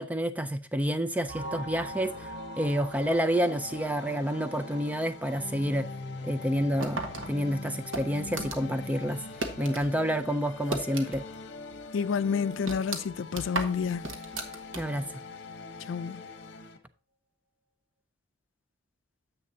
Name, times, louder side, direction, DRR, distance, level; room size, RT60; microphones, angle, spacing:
voice 1, 0.0-5.9 6.2-9.2 9.6-11.2 14.8-15.2, equal, 10° right, 0.4 m, -29 dB
sound 1, 1.3-10.6 10.8-11.1 11.3-11.5 11.8-12.0, right 1 dB, 30° right, 2.3 m, -46 dB
sound 2, 1.4-16.8, left 3 dB, 60° left, 1.0 m, -43 dB
sound 3, 6.8-9.9 10.2-11.4 11.7-11.8 12.3-15.1, right 2 dB, 85° right, 1.3 m, -36 dB
voice 2, 11.9-14.1 15.8-16.3, left 6 dB, 80° left, 0.4 m, -29 dB
9.6 x 7.6 x 2.7 m
head